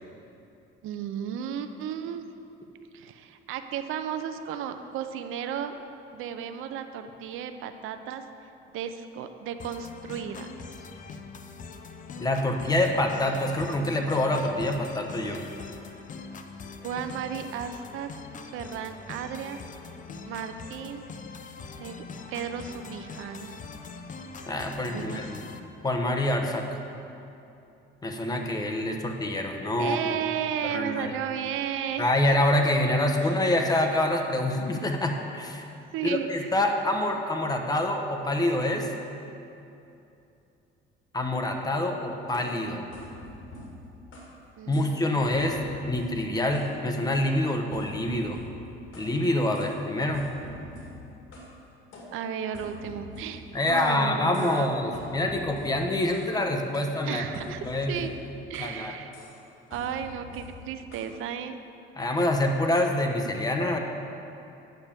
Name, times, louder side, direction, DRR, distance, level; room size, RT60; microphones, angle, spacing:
voice 1, 0.8-2.2 2.9-5.7 6.1-8.2 8.7-10.5 16.8-18.1 18.5-19.6 20.3-21.0 21.8-22.0 22.3-23.5 24.7-25.3 29.8-32.1 33.2-33.3 35.9-36.5 44.6-45.2 52.1-54.7 57.0-58.1 58.5-59.1 59.7-61.6, right 8 dB, 85° right, 8 dB, 0.7 m, -34 dB
sound 1, 9.6-25.6, left 4 dB, 40° left, 0.7 m, -42 dB
voice 2, 12.2-15.5 24.5-25.4 25.8-26.8 28.0-30.0 30.6-31.1 32.0-35.6 36.0-38.9 41.1-42.9 44.7-45.6 45.9-48.4 49.0-50.3 53.5-57.2 57.6-58.0 58.6-59.0 62.0-63.8, left 1 dB, 20° left, 3 dB, 1.0 m, -26 dB
sound 2, 42.3-44.4 44.7-45.0 45.3-46.8 47.1-49.2 49.5-49.8 50.1-51.6 51.9-54.0 54.3-54.7 54.9-56.4 56.7-58.8 59.1-59.4 59.7-61.1, left 1 dB, 75° left, 2.2 m, -45 dB
9.1 x 6.8 x 7.4 m, 2.8 s
cardioid pair, 125°, 21 cm